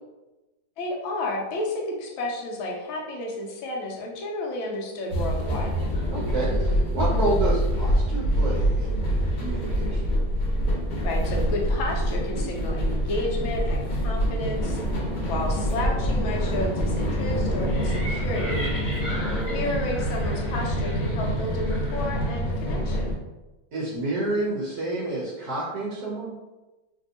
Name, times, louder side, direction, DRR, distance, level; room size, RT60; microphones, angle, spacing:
voice 1, 0.8-5.8 11.0-14.8 15.3-18.7 19.5-23.2, left 1 dB, 85° left, -1 dB, 1.4 m, -31 dB
sound 1, 5.1-23.1, equal, 60° left, 1.2 m, -26 dB
voice 2, 6.1-9.1 9.3-10.0 19.1-19.7 23.7-26.3, right 2 dB, 65° right, -5 dB, 1.0 m, -29 dB
sound 2, 17.7-22.5, equal, 35° left, 1.1 m, -38 dB
3.4 x 2.6 x 2.6 m, 1.1 s
omnidirectional pair, 2.2 m